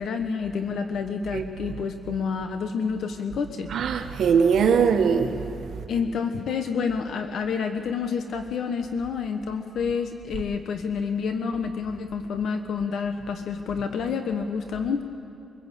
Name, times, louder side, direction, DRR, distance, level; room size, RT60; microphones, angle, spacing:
voice 1, 0.0-3.7 5.9-15.0, left 5 dB, 70° left, 6 dB, 1.2 m, -28 dB
voice 2, 3.7-5.3, right 6 dB, 70° right, 5 dB, 1.6 m, -21 dB
24.0 x 23.0 x 8.4 m, 2.7 s
wide cardioid pair, 145°, 0 cm